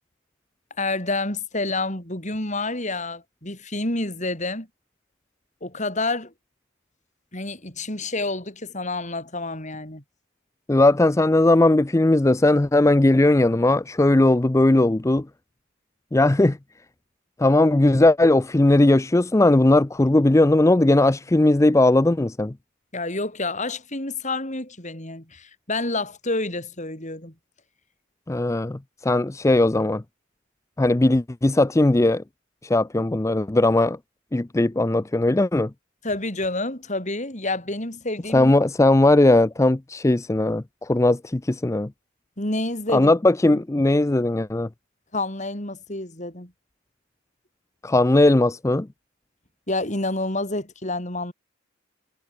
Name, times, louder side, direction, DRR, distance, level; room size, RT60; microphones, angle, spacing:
voice 1, 0.8-4.7 5.6-6.3 7.3-10.0 22.9-27.3 36.0-38.5 42.4-43.1 43.5-43.6 45.1-46.5 49.7-51.3, left 2 dB, 35° left, 6.4 m, -28 dB
voice 2, 10.7-15.3 16.1-16.6 17.4-22.5 28.3-30.0 30.8-32.2 32.6-34.0 34.3-35.7 38.3-41.9 42.9-44.7 47.8-48.9, left 2 dB, 15° left, 0.4 m, -18 dB
head